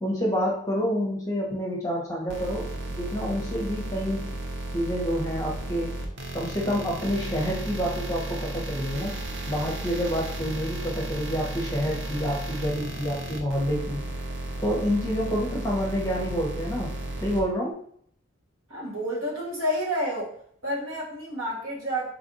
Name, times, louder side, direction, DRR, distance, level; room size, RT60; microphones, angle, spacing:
voice 1, 0.0-4.2 4.7-5.9 6.3-9.2 9.5-14.0 14.6-16.9 17.2-17.8, equal, 15° left, -2 dB, 0.8 m, -28 dB
sound 1, 2.3-17.4, right 1 dB, 55° right, 0.6 m, -34 dB
voice 2, 18.7-20.3 20.6-22.1, equal, 75° right, -3 dB, 1.2 m, -29 dB
3.3 x 2.5 x 3.9 m, 0.62 s
head